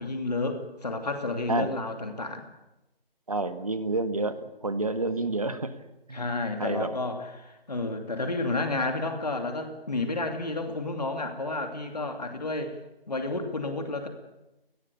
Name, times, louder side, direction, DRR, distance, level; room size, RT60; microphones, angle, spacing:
voice 1, 0.0-2.5 6.1-12.7 13.1-14.1, left 2 dB, 40° left, 5 dB, 2.8 m, -31 dB
voice 2, 3.3-4.4 4.6-5.7 6.1-6.2 6.6-6.9 8.2-8.5, right 3 dB, 35° right, 11 dB, 1.6 m, -29 dB
24.0 x 19.5 x 8.4 m, 0.97 s
figure-of-eight pair, 175°, 30 cm